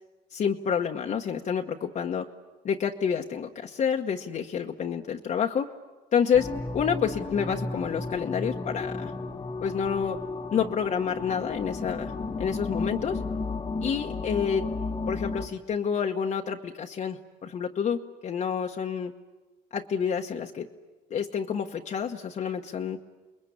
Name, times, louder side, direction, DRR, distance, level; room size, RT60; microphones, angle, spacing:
voice 1, 0.3-2.3 2.6-5.7 6.1-6.5 6.7-9.1 9.6-10.2 10.5-12.1 12.4-13.2 13.8-14.7 15.1-19.1 19.7-20.7 21.1-23.0, left 7 dB, 45° left, 1 dB, 1.2 m, -28 dB
sound 1, 6.3-15.5, left 3 dB, 25° left, 1.3 m, -33 dB
29.0 x 21.5 x 8.7 m, 1.2 s
cardioid pair, 110°, 17 cm